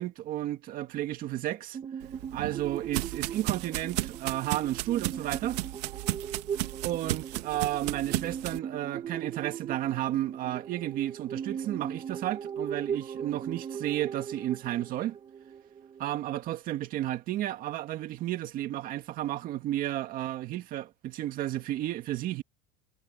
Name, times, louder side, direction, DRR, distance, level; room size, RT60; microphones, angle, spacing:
voice 1, 0.0-1.8 2.3-5.6 6.8-15.2 16.0-22.4, right 13 dB, 45° right, 2.0 m, -32 dB
sound 1, 1.7-16.1, right 7 dB, 25° right, 2.7 m, -39 dB
sound 2, 2.0-8.6, right 18 dB, 85° right, 1.8 m, -35 dB
supercardioid pair, 140°, 20 cm